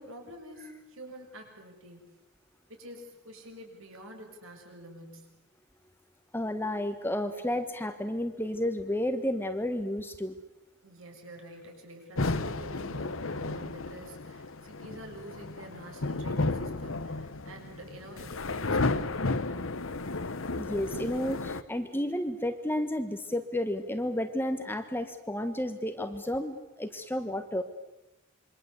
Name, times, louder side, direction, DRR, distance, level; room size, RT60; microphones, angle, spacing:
voice 1, 0.0-2.1 2.7-5.3 10.8-19.8, right 1 dB, 60° right, 3 dB, 6.8 m, -48 dB
voice 2, 6.3-10.3 20.5-27.6, left 1 dB, 10° left, 8 dB, 1.3 m, -31 dB
sound 1, 12.2-21.6, left 3 dB, 60° left, 1.1 m, -33 dB
27.5 x 24.0 x 8.3 m, 0.98 s
head